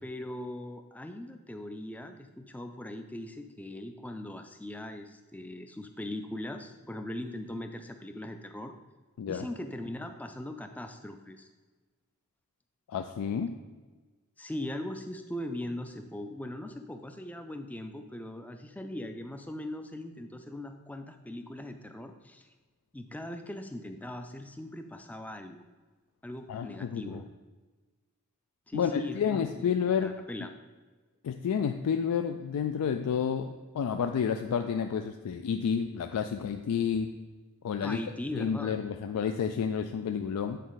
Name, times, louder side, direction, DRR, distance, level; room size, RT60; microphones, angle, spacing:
voice 1, 0.0-8.7 9.3-11.5 14.4-22.5 22.9-25.6 26.2-27.2 28.7-30.5 37.8-38.7, left 1 dB, 5° left, 7 dB, 0.3 m, -40 dB
voice 2, 12.9-13.6 26.5-27.2 28.7-30.1 31.2-37.1 37.6-38.0 38.4-40.6, left 7 dB, 90° left, 7 dB, 0.3 m, -30 dB
8.3 x 4.2 x 4.0 m, 1.3 s
head